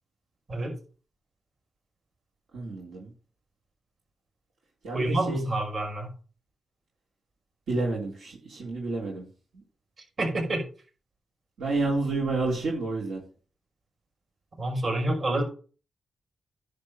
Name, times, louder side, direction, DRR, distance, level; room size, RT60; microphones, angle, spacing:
voice 1, 2.5-3.1 4.8-5.4 7.7-9.2 11.6-13.2, right 3 dB, 85° right, -3 dB, 3.7 m, -29 dB
voice 2, 4.9-6.1 10.2-10.6 14.6-15.4, right 1 dB, 50° right, 0 dB, 5.6 m, -27 dB
10.5 x 4.6 x 6.3 m, 0.38 s
cardioid pair, 85°, 0 cm